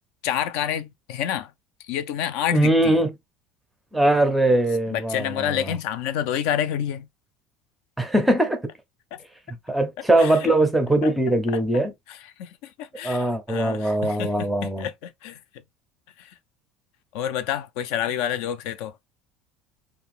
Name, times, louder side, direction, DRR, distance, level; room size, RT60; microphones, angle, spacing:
voice 1, 0.2-1.5 1.8-3.0 4.9-7.1 9.1-9.2 10.2-10.5 11.0-11.1 11.5-11.8 12.1-14.3 14.8-15.4 16.2-16.3 17.1-18.9, left 10 dB, 65° left, 0.5 m, -28 dB
voice 2, 2.5-3.1 3.9-5.7 8.0-8.7 9.7-11.9 13.0-14.9, right 1 dB, 5° right, 0.5 m, -21 dB
2.8 x 2.3 x 3.1 m
cardioid pair, 175°, 0 cm